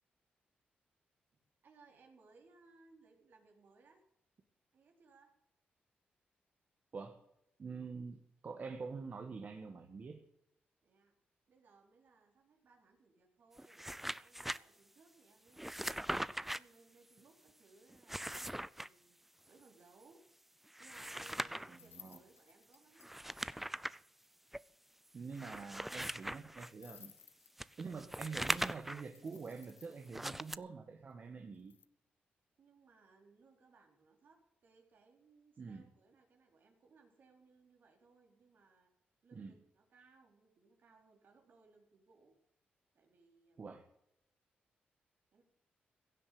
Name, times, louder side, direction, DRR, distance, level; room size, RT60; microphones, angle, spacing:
voice 1, 1.3-4.0 4.7-5.3 10.8-11.2 11.5-13.8 14.2-18.3 18.8-19.2 19.5-20.2 20.8-23.1 32.6-38.9 39.2-42.4 42.9-43.6 45.3-45.4, right 4 dB, 65° right, 2 dB, 4.1 m, -66 dB
voice 2, 7.6-8.2 8.4-10.2 21.7-22.2 25.1-27.1 27.8-31.8 35.6-35.8 39.3-39.6 43.6-43.8, right 5 dB, 45° right, 4 dB, 1.7 m, -46 dB
sound 1, 13.6-14.6 15.6-16.6 17.9-18.9 20.7-21.8 23.0-24.0 24.5-24.6 25.3-26.7 27.6-29.1 30.1-30.6, right 1 dB, 5° right, 0.5 m, -40 dB
sound 2, 21.6-23.3 23.6-23.7 23.9-24.0 24.2-24.3 24.6-24.7 26.7-27.9 29.1-30.2 31.5-31.9, left 8 dB, 65° left, 0.8 m, -59 dB
16.5 x 7.6 x 8.7 m, 0.79 s
cardioid pair, 85°, 4 cm